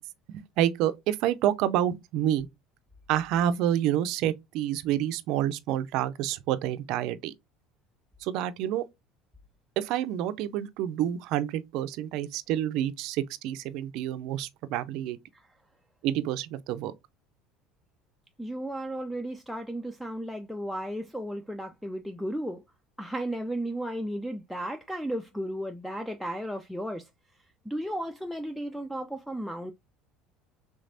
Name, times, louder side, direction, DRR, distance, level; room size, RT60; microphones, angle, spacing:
voice 1, 0.3-2.5 3.1-7.3 8.2-8.9 9.8-15.2 16.0-16.9, right 11 dB, 65° right, 0.4 m, -28 dB
voice 2, 18.4-22.6 23.0-27.0 27.7-29.7, right 1 dB, ahead, 0.4 m, -34 dB
3.4 x 3.2 x 2.6 m
supercardioid pair, 95°, 0 cm